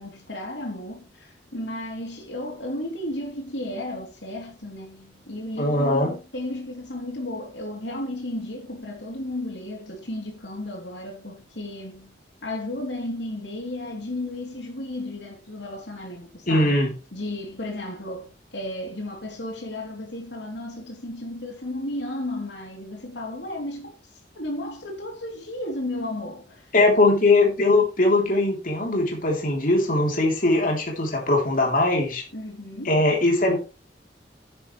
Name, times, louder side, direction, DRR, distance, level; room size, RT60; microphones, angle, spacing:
voice 1, 0.0-12.2 12.4-16.8 17.1-23.9 24.3-26.7 32.3-33.2, left 1 dB, 85° left, 3.3 m, -34 dB
voice 2, 5.6-6.1 16.5-16.9 26.7-32.2 32.9-33.6, left 2 dB, 50° left, 3.5 m, -20 dB
10.5 x 10.0 x 3.3 m
head